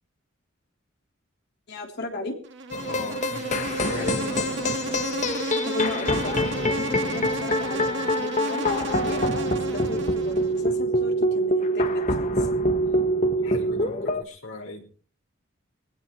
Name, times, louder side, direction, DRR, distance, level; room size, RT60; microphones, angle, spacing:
voice 1, 1.7-2.4 5.6-12.5, left 2 dB, 55° left, 2 dB, 3.7 m, -36 dB
Insect, 2.4-10.7, right 2 dB, 65° right, 1.8 m, -33 dB
sound 1, 2.7-14.2, equal, 40° left, 1.2 m, -25 dB
voice 2, 2.9-4.4 13.2-14.8, left 1 dB, 85° left, 1 dB, 5.5 m, -37 dB
22.0 x 16.5 x 3.2 m, 0.40 s
head